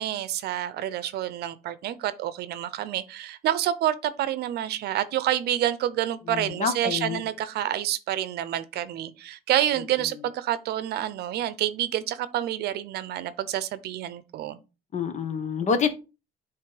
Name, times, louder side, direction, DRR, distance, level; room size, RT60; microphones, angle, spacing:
voice 1, 0.0-14.6, right 12 dB, 70° right, 0.7 m, -28 dB
voice 2, 6.3-7.2 14.9-15.9, left 6 dB, 45° left, 1.2 m, -27 dB
8.2 x 3.3 x 4.8 m
cardioid pair, 110°, 17 cm